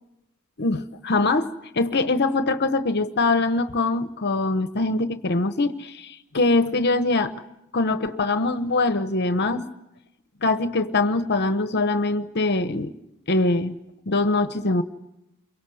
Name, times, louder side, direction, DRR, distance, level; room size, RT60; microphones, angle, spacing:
voice 1, 0.6-7.3 7.7-9.7 10.4-12.9 13.3-13.8 14.1-14.8, left 2 dB, 50° left, 11 dB, 1.0 m, -23 dB
28.5 x 23.5 x 7.8 m, 0.90 s
head